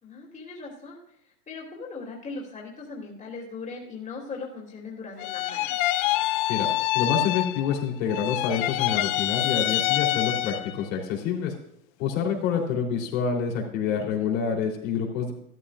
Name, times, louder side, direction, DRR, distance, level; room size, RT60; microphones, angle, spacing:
voice 1, 0.0-5.8 13.6-14.3, left 4 dB, 15° left, -1 dB, 2.9 m, -40 dB
sound 1, 5.2-10.8, left 16 dB, 35° left, 0.4 m, -26 dB
voice 2, 6.9-11.5 12.0-15.3, left 6 dB, 60° left, 0 dB, 3.7 m, -27 dB
13.5 x 13.5 x 2.5 m, 0.71 s
hypercardioid pair, 120°, 46 cm